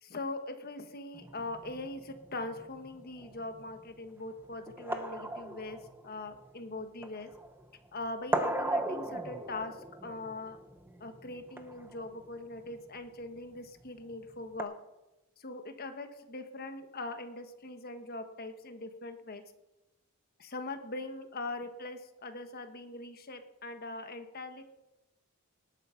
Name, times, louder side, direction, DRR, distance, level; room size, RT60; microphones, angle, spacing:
voice 1, 0.0-5.8 6.0-7.3 7.9-9.7 10.0-10.6 11.0-14.7 15.4-19.4 20.4-24.6, left 2 dB, 45° left, 7 dB, 1.3 m, -41 dB
sound 1, 1.1-14.6, right 1 dB, 10° right, 0.9 m, -39 dB
19.0 x 8.8 x 5.8 m, 1.0 s
head